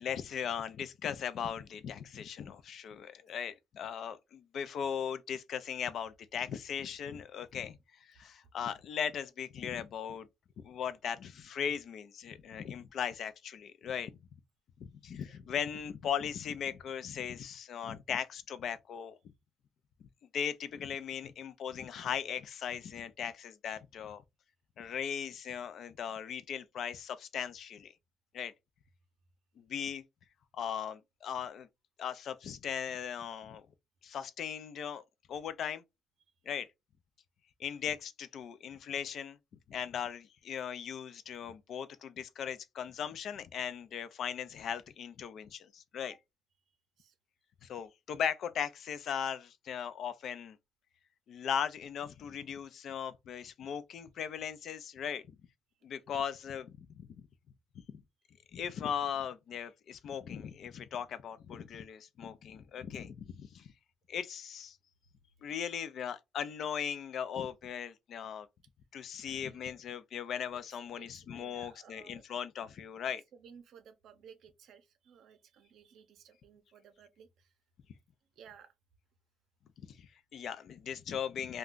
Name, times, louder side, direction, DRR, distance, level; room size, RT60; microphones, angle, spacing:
voice 1, 0.0-10.3 10.6-14.1 14.8-19.2 20.3-24.2 24.8-27.9 28.3-28.5 29.6-30.0 30.5-31.7 32.0-33.7 34.0-35.0 35.3-35.8 36.5-36.7 37.6-39.4 39.7-46.2 47.6-50.6 51.3-55.4 55.8-57.3 57.7-58.0 58.5-63.7 64.1-64.8 65.4-68.5 68.9-73.2 79.9-81.6, left 8 dB, 65° left, 0.4 m, -38 dB
voice 2, 69.3-69.7 70.5-72.2 73.3-77.5 78.4-78.7, right 7 dB, 75° right, 0.5 m, -57 dB
2.5 x 2.2 x 3.6 m
cardioid pair, 90°, 0 cm